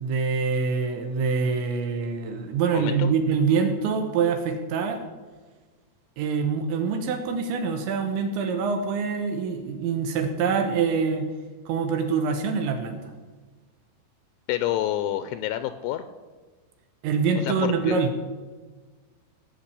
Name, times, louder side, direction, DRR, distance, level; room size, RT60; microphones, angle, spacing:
voice 1, 0.0-5.0 6.2-11.3 11.7-13.1 17.0-18.3, right 5 dB, 75° right, 5 dB, 3.2 m, -25 dB
voice 2, 2.7-3.1 14.5-16.0 17.4-18.0, left 13 dB, 85° left, 11 dB, 2.9 m, -28 dB
17.5 x 5.9 x 8.2 m, 1.3 s
omnidirectional pair, 5.8 m